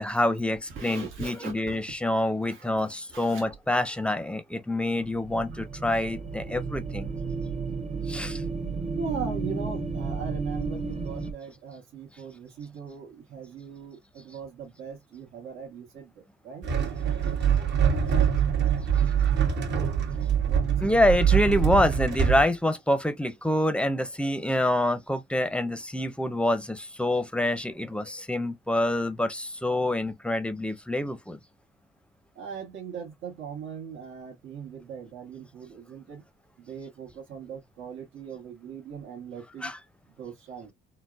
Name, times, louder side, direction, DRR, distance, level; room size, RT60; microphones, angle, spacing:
voice 1, 0.0-7.1 8.1-8.4 20.8-31.4 39.6-39.8, left 1 dB, 5° left, 0.5 m, -26 dB
voice 2, 0.7-1.8 2.4-3.5 5.5-5.6 9.0-16.1 16.4-16.7 20.5-20.9 32.4-36.2 36.7-39.7 40.2-40.7, right 6 dB, 85° right, 1.1 m, -40 dB
sound 1, 5.0-11.3, right 4 dB, 30° right, 0.7 m, -33 dB
sound 2, 16.6-22.4, right 8 dB, 60° right, 1.0 m, -24 dB
3.8 x 2.1 x 2.4 m
cardioid pair, 90°, 20 cm